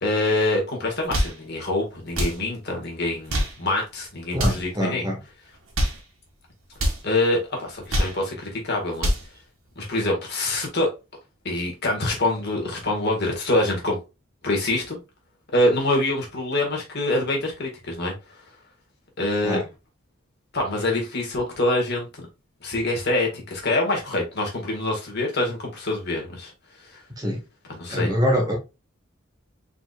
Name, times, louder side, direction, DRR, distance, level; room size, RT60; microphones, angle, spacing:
voice 1, 0.0-5.0 7.0-9.1 9.8-10.9 11.5-14.0 14.4-15.0 15.5-18.1 19.2-19.6 20.5-22.2 22.6-26.5 26.9-27.0 27.8-28.1, left 2 dB, 55° left, 1.8 m, -25 dB
sound 1, 0.9-1.4 2.1-2.4 3.1-3.6 4.3-4.7 5.5-6.0 6.7-7.0 7.7-8.2 8.8-9.3, equal, 90° right, 2.0 m, -25 dB
voice 2, 4.3-5.2 19.4-19.7 27.2-27.4 27.9-28.6, equal, 20° right, 1.3 m, -24 dB
4.6 x 4.2 x 2.4 m
head